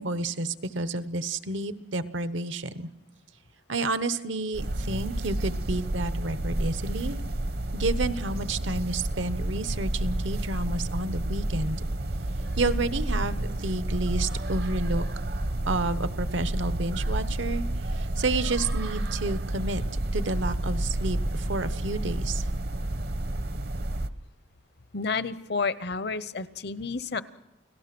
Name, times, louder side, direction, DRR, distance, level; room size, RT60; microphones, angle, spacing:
voice 1, 0.0-2.9 3.7-7.2 7.7-11.8 12.6-15.0 15.7-17.7 17.9-19.8 20.1-22.5, right 2 dB, 80° right, 12 dB, 1.0 m, -30 dB
sound 1, 4.5-24.1, right 1 dB, 55° right, 0.9 m, -30 dB
voice 2, 24.9-27.2, left 4 dB, 55° left, 15 dB, 0.7 m, -30 dB
29.5 x 17.5 x 6.0 m, 0.93 s
head